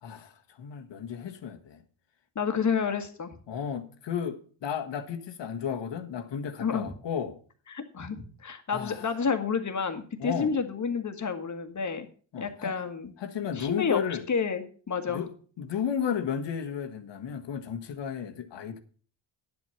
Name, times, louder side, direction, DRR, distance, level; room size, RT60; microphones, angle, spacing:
voice 1, 0.0-1.8 3.5-7.4 8.7-9.1 10.2-10.6 12.3-12.7 13.2-14.2 15.1-15.3 15.6-18.8, left 8 dB, 60° left, 1.6 m, -33 dB
voice 2, 2.4-3.3 6.6-6.9 7.7-12.1 12.4-13.1 13.6-14.0 14.3-15.3, left 6 dB, 35° left, 1.8 m, -30 dB
10.5 x 7.8 x 5.8 m
cardioid pair, 85°, 48 cm